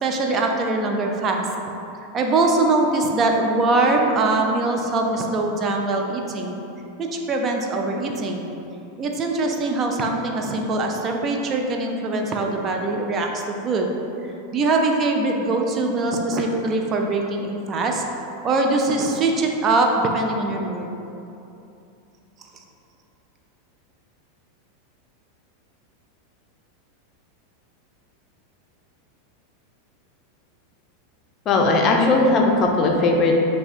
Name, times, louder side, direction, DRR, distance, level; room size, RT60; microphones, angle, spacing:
voice 1, 0.0-1.5 2.1-6.5 7.0-8.4 9.0-13.9 14.2-20.9, right 2 dB, 35° right, 2 dB, 0.4 m, -22 dB
voice 2, 31.5-33.4, left 2 dB, 40° left, 1 dB, 0.5 m, -18 dB
3.5 x 2.2 x 4.2 m, 2.8 s
hypercardioid pair, 105°, 0 cm